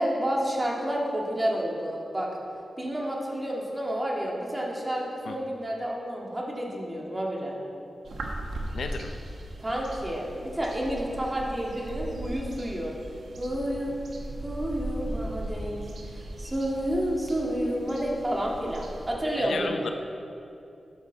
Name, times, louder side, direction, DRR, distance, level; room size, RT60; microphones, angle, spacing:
voice 1, 0.0-2.3 2.8-7.6 9.6-12.9 13.4-14.0 14.4-19.8, equal, 25° right, -2 dB, 1.9 m, -30 dB
sound 1, 8.0-19.1, right 1 dB, 85° right, 1.0 m, -38 dB
voice 2, 8.7-9.2 19.4-19.9, left 4 dB, 90° left, 6 dB, 0.5 m, -33 dB
11.0 x 6.9 x 3.9 m, 2.6 s
cardioid pair, 60°, 0 cm